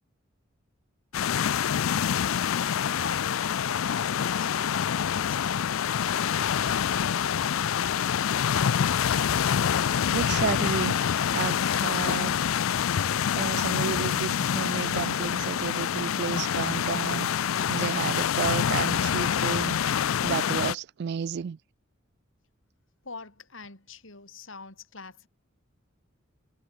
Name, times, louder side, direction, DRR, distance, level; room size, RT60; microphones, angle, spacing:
sound 1, 1.1-20.7, left 8 dB, 90° left, 0.5 m, -26 dB
voice 1, 3.0-8.4 23.0-25.3, left 3 dB, 70° left, 6.1 m, -44 dB
voice 2, 10.1-12.3 13.3-17.3 17.7-21.6, right 7 dB, 55° right, 0.3 m, -32 dB
head